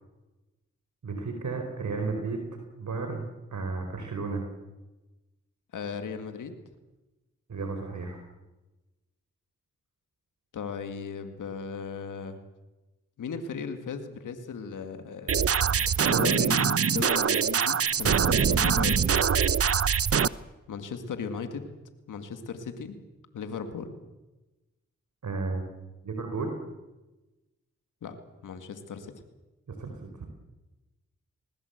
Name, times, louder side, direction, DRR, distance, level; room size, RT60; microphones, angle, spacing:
voice 1, 1.0-2.4 2.8-3.2 3.5-4.4 7.5-8.2 25.2-25.6 26.0-26.5 29.7-30.3, right 4 dB, 70° right, 4 dB, 4.1 m, -33 dB
voice 2, 5.7-6.5 10.5-12.4 13.2-19.3 20.7-21.6 22.1-23.0 23.3-23.9 28.0-28.2 28.4-29.1, left 5 dB, 85° left, 8 dB, 2.1 m, -36 dB
sound 1, 15.3-20.3, right 7 dB, 50° right, 0.8 m, -23 dB
20.5 x 19.5 x 8.0 m, 1.1 s
supercardioid pair, 40°, 30 cm